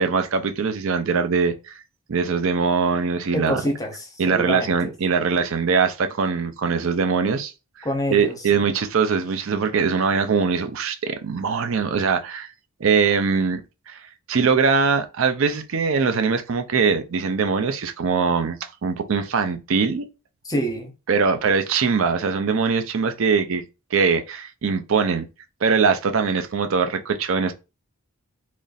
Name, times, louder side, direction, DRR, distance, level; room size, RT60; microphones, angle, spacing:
voice 1, 0.0-1.8 2.1-3.6 4.2-7.5 7.8-12.5 12.8-13.6 13.9-14.0 14.3-20.0 21.1-23.6 23.9-25.3 25.6-27.5, right 5 dB, 60° right, 0.5 m, -22 dB
voice 2, 3.3-4.9 7.8-8.5 20.4-20.9, equal, 15° left, 0.7 m, -27 dB
3.0 x 2.5 x 3.9 m
head